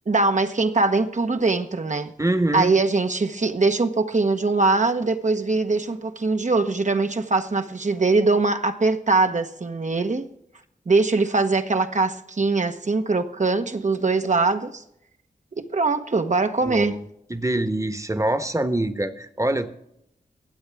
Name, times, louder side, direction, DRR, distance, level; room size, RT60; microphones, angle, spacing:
voice 1, 0.1-2.1 2.5-10.3 10.9-14.8 15.6-16.9, right 3 dB, 50° right, 1.0 m, -22 dB
voice 2, 2.2-2.8 16.6-19.7, right 1 dB, 20° right, 1.2 m, -25 dB
23.0 x 8.0 x 3.5 m
wide cardioid pair, 60°, 16 cm